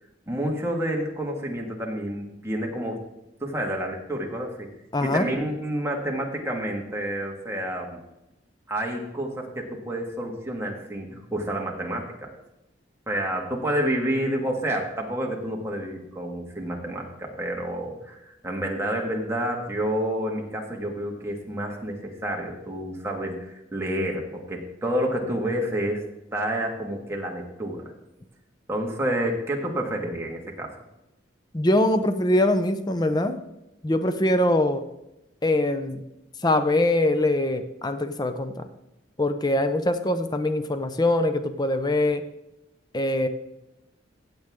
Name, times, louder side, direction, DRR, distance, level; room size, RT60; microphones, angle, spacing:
voice 1, 0.3-3.1 3.4-4.7 5.0-8.0 8.7-12.3 13.1-26.0 26.3-27.9 28.7-30.7, right 1 dB, 15° right, 0 dB, 1.7 m, -29 dB
voice 2, 4.9-5.3 31.5-33.4 33.8-34.8 35.4-36.0 36.4-38.7 39.2-42.2 42.9-43.3, left 1 dB, 20° left, 9 dB, 0.6 m, -23 dB
15.5 x 7.9 x 3.6 m, 0.91 s
head